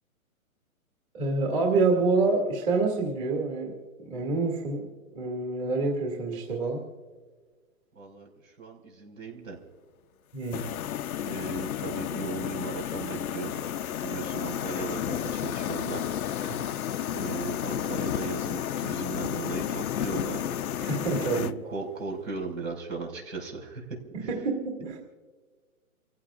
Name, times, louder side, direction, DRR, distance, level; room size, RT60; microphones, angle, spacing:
voice 1, 1.1-3.7 4.0-6.8 10.3-10.6 16.5-16.7 20.8-21.5 24.1-25.0, right 3 dB, 25° right, -1 dB, 2.5 m, -27 dB
voice 2, 8.0-9.6 11.2-13.6 14.0-16.0 16.3-20.4 21.3-23.8 24.2-24.3, right 4 dB, 70° right, 1 dB, 5.5 m, -37 dB
sound 1, 10.5-21.5, left 10 dB, 80° left, 0.7 m, -32 dB
29.5 x 15.5 x 2.5 m, 1.5 s
hypercardioid pair, 165°, 43 cm